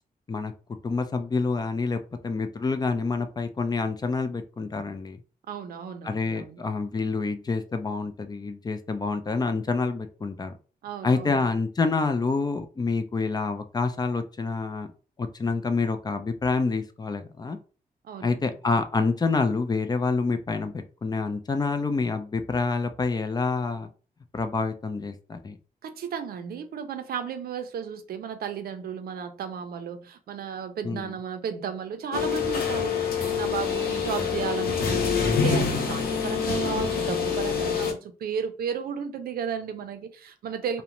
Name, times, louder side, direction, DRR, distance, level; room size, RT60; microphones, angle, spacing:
voice 1, 0.8-5.2 6.0-10.5 11.0-14.9 15.2-17.6 18.2-20.7 21.0-23.9 24.3-25.6 30.8-31.1, left 4 dB, 25° left, 0.3 m, -27 dB
voice 2, 5.5-6.6 10.8-11.5 18.0-18.5 25.8-40.8, right 7 dB, 90° right, 0.4 m, -34 dB
sound 1, 32.1-37.9, left 6 dB, 85° left, 0.6 m, -26 dB
2.5 x 2.1 x 2.9 m
cardioid pair, 100°, 15 cm